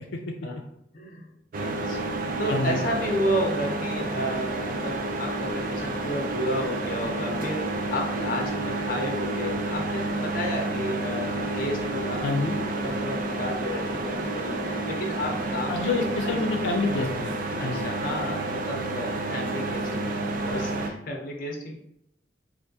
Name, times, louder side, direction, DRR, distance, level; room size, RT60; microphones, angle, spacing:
voice 1, 0.9-1.3 1.6-12.2 12.7-15.9 16.2-16.3 17.6-21.8, equal, 55° left, 1 dB, 0.7 m, -32 dB
sound 1, 1.5-20.9, right 2 dB, 50° right, 0.4 m, -30 dB
voice 2, 2.5-2.8 12.2-12.6 15.7-17.3 17.6-17.9, left 3 dB, 90° left, 2 dB, 0.4 m, -27 dB
3.4 x 2.5 x 2.7 m, 0.79 s
head